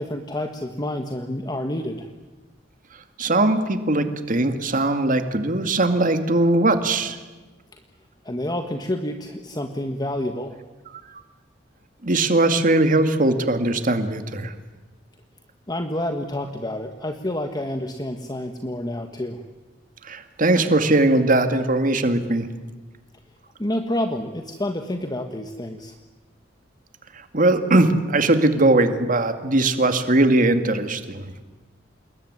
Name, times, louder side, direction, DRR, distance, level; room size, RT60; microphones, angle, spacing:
voice 1, 0.0-2.1 7.7-7.8 8.2-10.6 15.7-19.5 23.6-26.0, left 1 dB, 20° left, 5 dB, 1.5 m, -28 dB
voice 2, 3.2-7.2 12.0-14.5 20.0-22.5 27.3-31.3, right 2 dB, 45° right, 8 dB, 2.3 m, -20 dB
27.5 x 21.5 x 9.7 m, 1.3 s
head